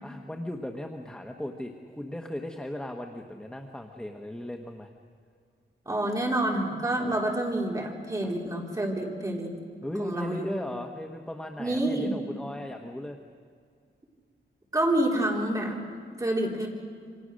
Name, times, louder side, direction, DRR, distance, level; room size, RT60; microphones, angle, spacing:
voice 1, 0.0-4.9 8.2-8.3 9.8-13.2, left 1 dB, 5° left, 3 dB, 1.1 m, -37 dB
voice 2, 5.9-9.5 10.0-10.5 11.6-12.1 14.7-15.8 16.2-16.7, right 1 dB, 15° right, -1 dB, 3.6 m, -28 dB
28.5 x 25.0 x 6.4 m, 2.1 s
wide cardioid pair, 165°, 21 cm